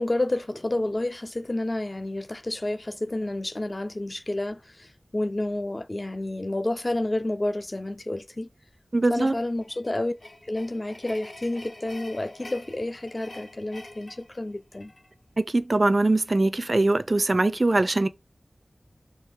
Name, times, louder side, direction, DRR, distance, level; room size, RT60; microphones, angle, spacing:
voice 1, 0.0-8.5 9.1-10.2 10.4-14.9, left 1 dB, 35° left, 0.5 m, -30 dB
voice 2, 8.9-9.3 15.4-18.1, right 2 dB, 45° right, 0.4 m, -22 dB
sound 1, 9.6-15.1, left 2 dB, 70° left, 1.6 m, -46 dB
3.7 x 3.0 x 4.4 m
wide cardioid pair, 60°, 0 cm